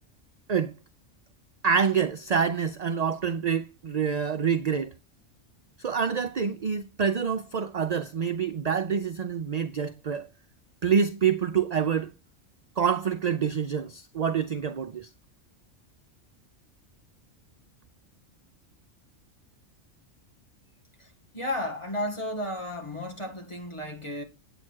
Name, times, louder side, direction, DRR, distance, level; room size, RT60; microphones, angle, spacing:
voice 1, 1.6-4.9 5.8-10.3 10.8-12.1 12.8-15.1, right 7 dB, 50° right, 0.5 m, -26 dB
voice 2, 21.0-24.2, left 1 dB, 25° left, 2.0 m, -33 dB
8.7 x 7.7 x 4.5 m
omnidirectional pair, 1.3 m